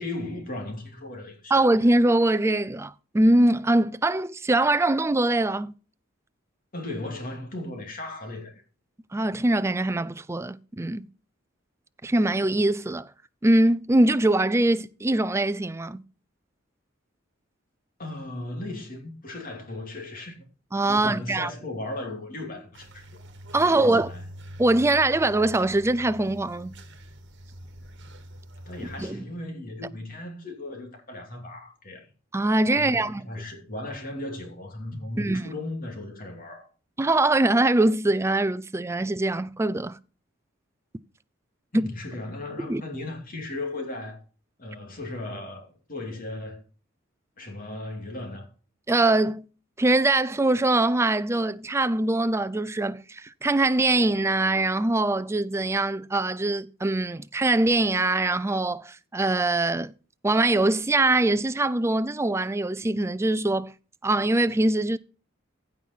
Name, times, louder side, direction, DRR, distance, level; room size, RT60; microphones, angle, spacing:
voice 1, 0.0-1.5 6.7-8.6 18.0-20.4 20.9-23.2 23.6-24.2 28.7-32.1 32.7-36.7 41.7-44.2 44.6-46.6 47.4-48.5, left 2 dB, 45° left, 2.7 m, -36 dB
voice 2, 1.5-5.7 9.1-11.1 12.0-13.1 13.4-16.0 20.7-21.5 23.5-24.1 24.6-26.7 29.0-29.2 32.3-33.3 35.2-35.5 37.0-40.0 41.7-41.9 42.6-42.8 48.9-49.5 49.8-59.9 60.2-63.7 64.0-65.0, right 2 dB, 15° right, 0.4 m, -23 dB
sound 1, 22.7-29.1, equal, 60° right, 1.6 m, -44 dB
15.5 x 5.6 x 4.5 m
head